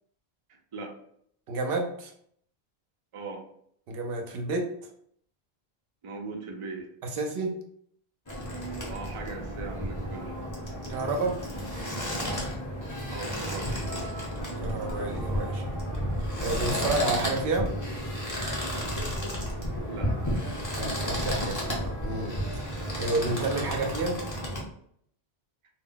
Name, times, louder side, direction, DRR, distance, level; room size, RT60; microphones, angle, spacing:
voice 1, 1.5-2.1 3.9-4.8 7.0-7.5 10.9-11.4 14.6-15.7 16.4-17.7 20.8-22.4 23.0-24.2, right 2 dB, 70° right, 2 dB, 0.7 m, -30 dB
voice 2, 3.1-3.5 6.0-6.9 8.9-10.3 13.1-14.1 19.9-20.1, right 3 dB, 45° right, 1 dB, 0.4 m, -39 dB
sound 1, 8.3-24.6, equal, 20° left, 0.7 m, -32 dB
2.2 x 2.1 x 3.7 m, 0.66 s
omnidirectional pair, 1.1 m